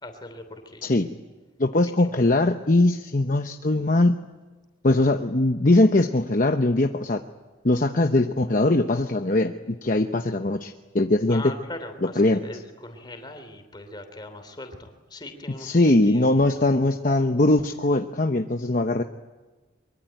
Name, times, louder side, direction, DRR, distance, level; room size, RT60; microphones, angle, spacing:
voice 1, 0.0-0.8 2.0-2.2 11.3-16.6, left 2 dB, 20° left, 7 dB, 3.2 m, -40 dB
voice 2, 1.6-4.1 4.8-7.2 7.6-11.5 12.2-12.4 15.6-19.0, left 2 dB, 45° left, 5 dB, 0.9 m, -21 dB
24.0 x 23.5 x 9.1 m, 1.3 s
head